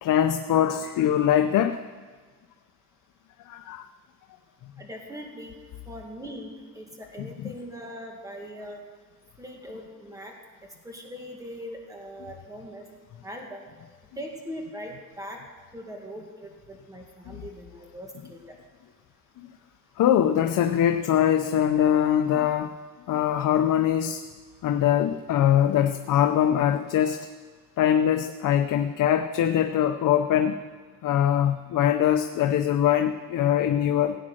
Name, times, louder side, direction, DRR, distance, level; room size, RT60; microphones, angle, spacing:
voice 1, 0.0-1.8 3.5-3.8 7.4-7.5 17.3-17.4 19.4-19.5 20.0-22.7 23.1-24.2 24.6-27.2 27.8-30.6 31.0-34.2, left 10 dB, 70° left, 7 dB, 0.7 m, -22 dB
voice 2, 4.8-5.6 5.9-8.8 9.4-10.3 10.8-12.8 13.2-13.6 14.2-15.4 15.7-18.4, equal, 10° right, 1 dB, 2.1 m, -40 dB
16.5 x 8.7 x 6.4 m, 1.5 s
cardioid pair, 145°, 33 cm